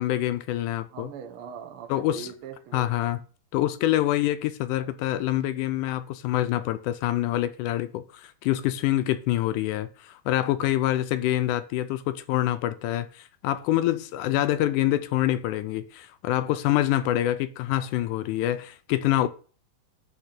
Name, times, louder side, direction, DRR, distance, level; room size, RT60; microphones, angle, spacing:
voice 1, 0.0-1.1 1.9-2.3 2.7-3.2 3.5-19.3, left 14 dB, 80° left, 1.9 m, -26 dB
voice 2, 0.9-3.0, right 8 dB, 65° right, 1.3 m, -41 dB
10.5 x 3.6 x 6.6 m
omnidirectional pair, 4.0 m